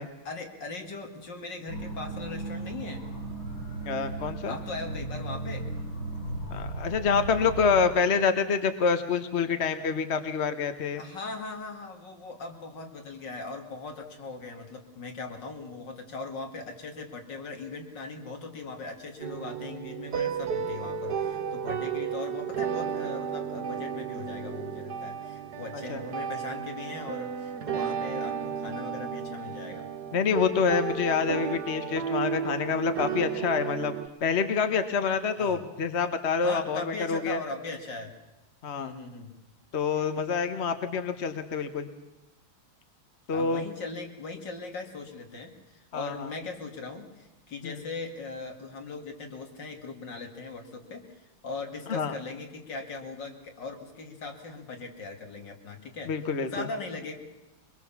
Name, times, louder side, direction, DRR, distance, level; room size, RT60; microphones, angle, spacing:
voice 1, 0.2-3.1 4.4-5.7 10.9-29.9 35.4-35.6 36.4-38.1 38.8-39.4 39.9-40.0 43.3-56.1 56.4-57.1, left 3 dB, 60° left, 4 dB, 2.9 m, -39 dB
sound 1, 1.7-7.8, right 2 dB, 90° left, 6.4 m, -36 dB
voice 2, 3.8-4.6 6.5-11.0 25.9-26.0 30.1-33.9 34.2-37.4 38.6-38.9 39.7-41.9 43.3-43.6 45.9-46.3 47.6-47.8 51.9-52.1 56.1-56.7, left 5 dB, 40° left, 9 dB, 1.3 m, -27 dB
sound 2, 19.2-34.1, right 7 dB, 55° right, 1.8 m, -33 dB
23.5 x 22.0 x 7.2 m, 1.0 s
omnidirectional pair, 2.2 m